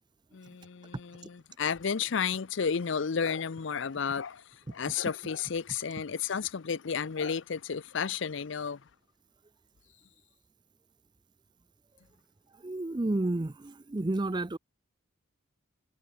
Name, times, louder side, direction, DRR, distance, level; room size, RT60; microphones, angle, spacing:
voice 1, 0.3-8.8, left 6 dB, 60° left, 0.5 m, -32 dB
voice 2, 12.6-14.6, right 2 dB, 20° right, 0.5 m, -31 dB
head